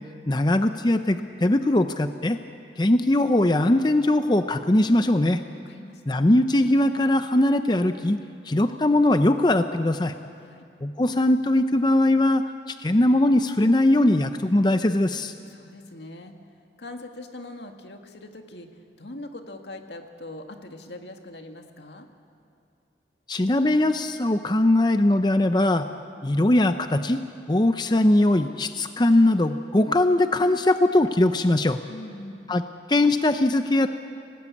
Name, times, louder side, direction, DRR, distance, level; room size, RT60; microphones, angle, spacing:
voice 1, 0.3-2.4 2.8-5.4 6.1-8.2 8.5-10.1 10.8-12.4 12.7-15.3 23.3-25.9 26.2-27.2 27.5-31.8 32.5-32.6 32.9-33.9, left 1 dB, 25° left, 8 dB, 0.6 m, -20 dB
voice 2, 5.7-6.1 10.4-10.6 15.4-16.3 16.8-18.7 19.0-22.1 31.9-32.5, left 2 dB, 80° left, 4 dB, 2.0 m, -41 dB
28.5 x 18.5 x 8.5 m, 2.5 s
head